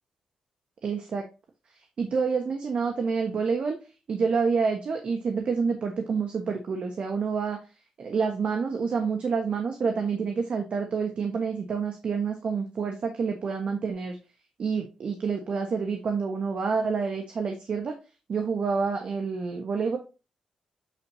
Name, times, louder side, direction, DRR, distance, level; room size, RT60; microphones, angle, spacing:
voice 1, 0.8-1.2 2.0-3.8 4.1-7.6 8.0-14.2 14.6-17.9 18.3-20.0, right 5 dB, 55° right, 4 dB, 1.3 m, -28 dB
8.9 x 4.5 x 2.7 m, 0.31 s
cardioid pair, 80°, 2 cm